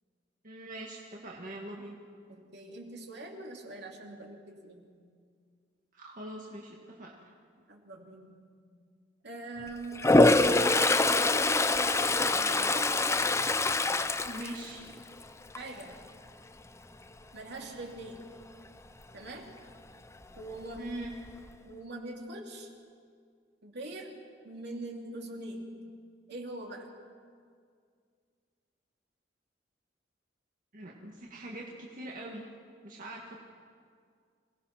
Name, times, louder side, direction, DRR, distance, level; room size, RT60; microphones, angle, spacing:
voice 1, 0.4-2.0 5.9-7.1 14.2-14.8 20.8-21.1 30.7-32.4 32.8-33.4, right 1 dB, 45° right, -2 dB, 1.9 m, -42 dB
voice 2, 2.3-4.9 7.7-8.4 9.2-13.0 14.8-14.9 15.5-15.9 17.3-18.3 19.1-19.6 20.3-21.0 21.6-22.7 23.6-24.2 24.4-25.9 26.3-26.9, right 2 dB, 65° right, 1 dB, 2.8 m, -43 dB
Toilet flush, 9.9-15.1 15.5-15.9 20.4-20.5 20.8-21.5, left 2 dB, 15° left, 0.6 m, -24 dB
26.5 x 18.0 x 5.9 m, 2.1 s
head